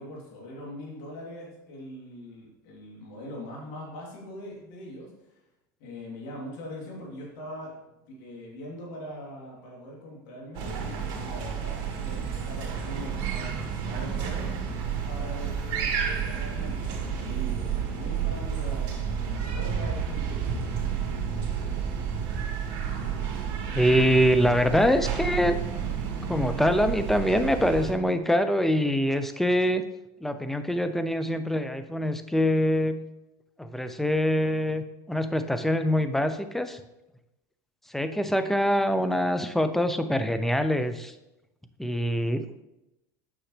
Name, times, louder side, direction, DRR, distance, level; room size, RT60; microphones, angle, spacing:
voice 1, 0.0-5.4 5.8-14.5 15.1-20.9, left 1 dB, 75° left, -3 dB, 3.1 m, -42 dB
sound 1, 10.5-27.9, right 7 dB, 55° right, 2.1 m, -31 dB
voice 2, 23.7-25.6 26.3-29.8 30.2-33.1 33.6-36.8 37.9-41.1 41.8-42.5, equal, 5° left, 9 dB, 0.6 m, -24 dB
8.9 x 6.3 x 3.3 m, 0.93 s
supercardioid pair, 110°, 10 cm